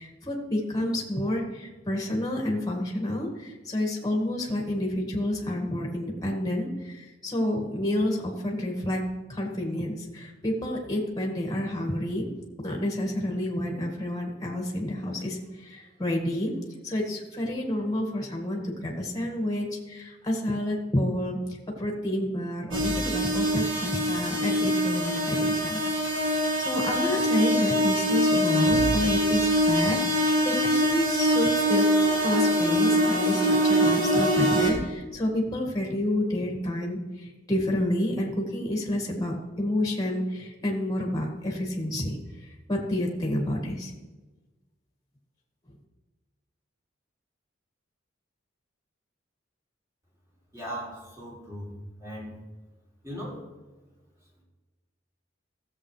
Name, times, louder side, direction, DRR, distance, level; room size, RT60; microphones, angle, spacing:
voice 1, 0.0-9.0 9.3-12.3 12.6-16.5 16.8-21.4 21.8-31.9 32.2-43.9, left 1 dB, 20° left, 0 dB, 1.9 m, -29 dB
sound 1, 22.7-34.7, equal, 90° right, 3.1 m, -24 dB
voice 2, 50.5-51.7 52.0-52.3 53.0-53.4, equal, 15° right, -4 dB, 3.1 m, -38 dB
16.0 x 7.4 x 3.3 m, 1.2 s
head